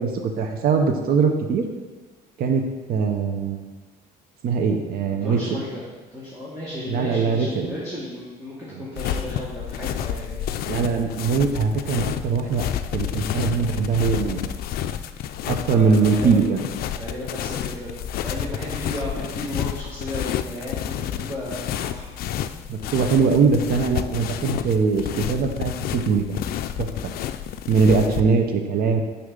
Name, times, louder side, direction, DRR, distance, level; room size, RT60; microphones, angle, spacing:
voice 1, 0.0-1.6 2.4-2.6 2.9-3.6 4.4-5.6 6.9-7.7 10.7-12.6 12.9-14.4 15.5-16.6 22.7-26.3 26.8-27.1 27.7-29.0, right 5 dB, 60° right, 5 dB, 0.7 m, -21 dB
voice 2, 5.2-10.4 15.7-16.5 17.0-22.1, left 1 dB, 20° right, -7 dB, 1.8 m, -34 dB
sound 1, 9.0-28.2, left 10 dB, 65° left, 0.4 m, -30 dB
6.3 x 5.9 x 3.8 m, 1.3 s
cardioid pair, 110°, 17 cm